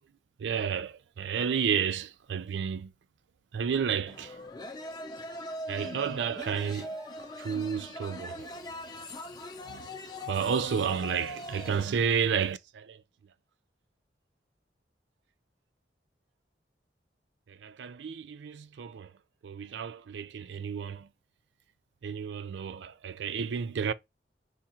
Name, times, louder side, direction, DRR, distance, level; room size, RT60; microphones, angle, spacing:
voice 1, 0.4-2.9 3.5-4.4 5.7-6.9 7.4-8.6 9.6-13.0 17.5-19.1 19.4-21.1 22.0-23.9, right 7 dB, 85° right, 0.4 m, -31 dB
sound 1, 4.1-11.9, left 1 dB, 20° left, 0.6 m, -41 dB
Shout, 5.6-10.7, equal, 20° right, 0.5 m, -56 dB
5.1 x 2.4 x 4.2 m
head